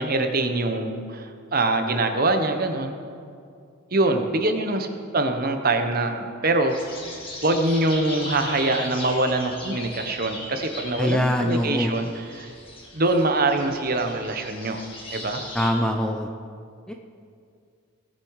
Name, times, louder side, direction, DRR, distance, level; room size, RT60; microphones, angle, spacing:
voice 1, 0.0-2.9 3.9-4.9 5.1-6.9 7.4-12.5 12.9-14.8 15.1-15.4, right 2 dB, 45° right, 6 dB, 1.0 m, -24 dB
sound 1, 6.7-15.7, left 1 dB, 25° left, 2.1 m, -38 dB
voice 2, 11.0-11.9 15.5-16.3 16.9-17.0, left 1 dB, 5° left, 3 dB, 0.5 m, -23 dB
19.5 x 7.3 x 4.8 m, 2.3 s
head